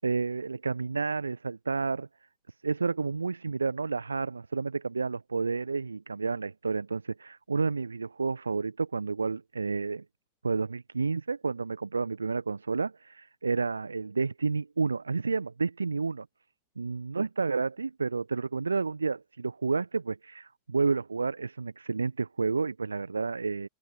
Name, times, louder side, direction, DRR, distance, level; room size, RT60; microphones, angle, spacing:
voice 1, 0.0-2.1 2.6-10.0 10.4-16.2 16.8-23.7, right 4 dB, 75° right, 1.3 m, -30 dB
open air
figure-of-eight pair, 90°, 0 cm